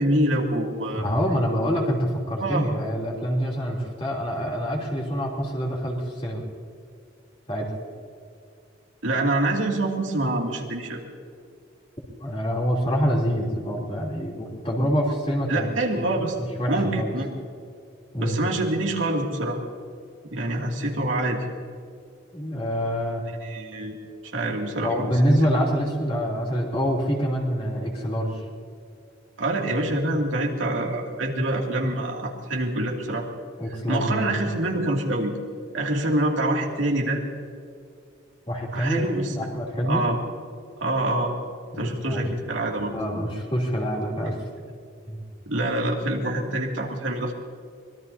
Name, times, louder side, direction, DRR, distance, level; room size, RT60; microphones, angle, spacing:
voice 1, 0.0-1.0 2.4-2.7 9.0-11.0 15.5-16.3 16.7-17.3 18.2-19.6 20.3-21.5 23.4-24.0 24.3-25.1 29.4-33.2 33.9-35.3 35.7-37.2 38.7-39.3 39.8-40.2 40.8-41.3 41.8-42.9 45.5-47.3, right 1 dB, 80° right, -1 dB, 2.6 m, -25 dB
voice 2, 0.9-6.5 7.5-7.7 12.2-15.7 16.0-16.2 16.6-17.1 18.1-18.4 22.3-23.2 24.8-28.4 33.6-34.5 38.5-40.1 41.7-42.3 42.8-44.4 45.1-45.2, equal, 30° left, -3 dB, 3.2 m, -26 dB
24.5 x 21.0 x 2.8 m, 2.4 s
head